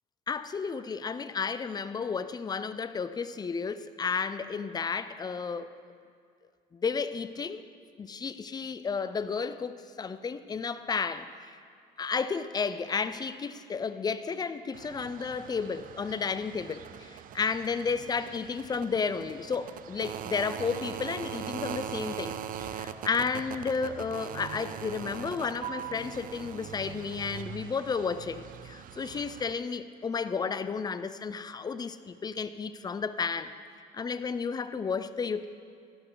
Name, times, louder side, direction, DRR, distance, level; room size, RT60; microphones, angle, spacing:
voice 1, 0.3-5.7 6.7-7.7 8.0-11.6 12.0-33.5 33.9-35.5, left 5 dB, 25° left, 13 dB, 0.5 m, -32 dB
sound 1, 14.7-29.5, right 10 dB, 55° right, 0.5 m, -41 dB
12.5 x 12.0 x 3.9 m, 2.2 s
cardioid pair, 110°, 17 cm